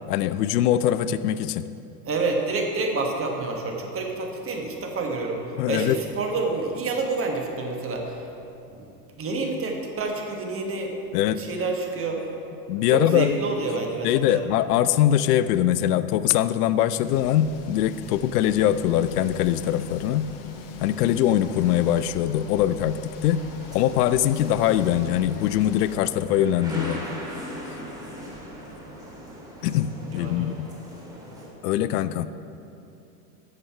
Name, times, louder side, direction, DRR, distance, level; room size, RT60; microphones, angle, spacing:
voice 1, 0.1-1.7 5.6-6.0 11.1-11.4 12.7-13.3 14.0-20.3 20.8-23.5 23.7-27.0 29.6-30.7 31.6-32.3, left 11 dB, 70° left, 14 dB, 0.5 m, -22 dB
voice 2, 2.1-8.2 8.7-8.8 9.2-10.9 11.4-12.3 12.9-14.4 30.0-30.5, right 3 dB, 25° right, 2 dB, 1.3 m, -28 dB
sound 1, 17.0-26.0, left 6 dB, 40° left, 0.9 m, -42 dB
sound 2, 23.2-31.5, equal, 10° right, 1.9 m, -39 dB
8.8 x 6.7 x 4.8 m, 2.8 s
hypercardioid pair, 100°, 48 cm